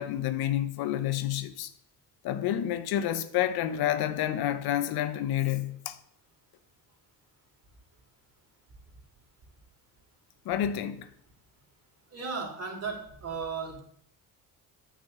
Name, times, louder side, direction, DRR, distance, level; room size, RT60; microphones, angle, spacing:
voice 1, 0.0-1.7 2.2-6.0 10.4-11.1, left 11 dB, 90° left, 1.0 m, -29 dB
voice 2, 12.1-13.8, right 5 dB, 40° right, 3.3 m, -35 dB
9.4 x 6.1 x 7.5 m
cardioid pair, 115°, 37 cm